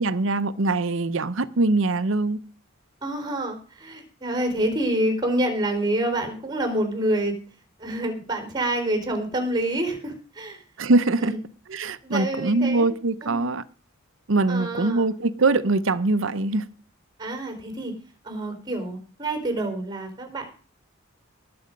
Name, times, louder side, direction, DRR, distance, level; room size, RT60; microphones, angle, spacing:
voice 1, 0.0-2.4 10.8-11.3 11.7-13.6 14.3-16.6, right 2 dB, 60° right, 0.8 m, -22 dB
voice 2, 3.0-7.3 7.8-10.6 11.2-11.4 12.0-12.9 13.2-13.5 14.5-15.1 17.2-17.9 18.2-20.5, right 1 dB, 20° right, 4.0 m, -27 dB
19.5 x 7.7 x 5.2 m
head